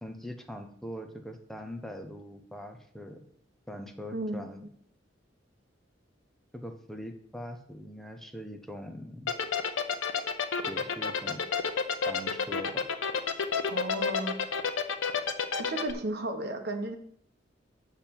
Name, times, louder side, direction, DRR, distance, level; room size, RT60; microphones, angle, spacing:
voice 1, 0.0-3.2 3.7-4.6 6.5-9.3 10.7-11.4 12.0-12.8, equal, ahead, 5 dB, 0.7 m, -42 dB
voice 2, 4.1-4.5 13.7-14.4 15.6-17.0, right 2 dB, 55° right, 5 dB, 1.1 m, -34 dB
sound 1, 9.3-15.9, left 6 dB, 90° left, 0.8 m, -29 dB
7.4 x 4.4 x 7.0 m, 0.67 s
head